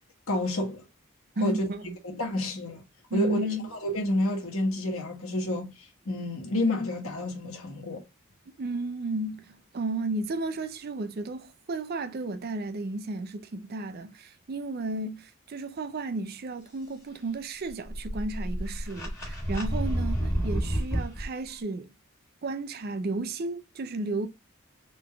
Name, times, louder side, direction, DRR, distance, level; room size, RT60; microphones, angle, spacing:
voice 1, 0.3-0.8 1.4-1.6 2.0-2.8 3.1-8.0, left 1 dB, 75° left, 1.3 m, -29 dB
voice 2, 1.4-2.0 3.1-3.7 8.6-21.9 22.4-24.3, right 2 dB, 45° right, 0.4 m, -33 dB
sound 1, 17.7-21.2, equal, 10° left, 1.8 m, -29 dB
3.8 x 3.5 x 2.2 m
head